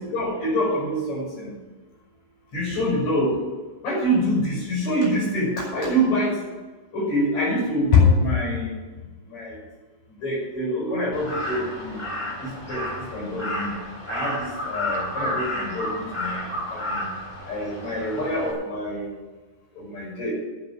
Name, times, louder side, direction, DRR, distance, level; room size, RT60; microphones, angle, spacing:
voice 1, 0.1-1.5 2.5-3.4 3.8-6.4 6.9-8.7 9.3-9.6 10.2-12.0 12.4-13.7 14.1-17.1 17.5-19.1 19.8-20.3, left 1 dB, 65° left, -3 dB, 6.7 m, -25 dB
Crow, 11.1-18.5, left 1 dB, 15° left, 3.5 m, -31 dB
11.0 x 7.1 x 9.0 m, 1.3 s
omnidirectional pair, 3.5 m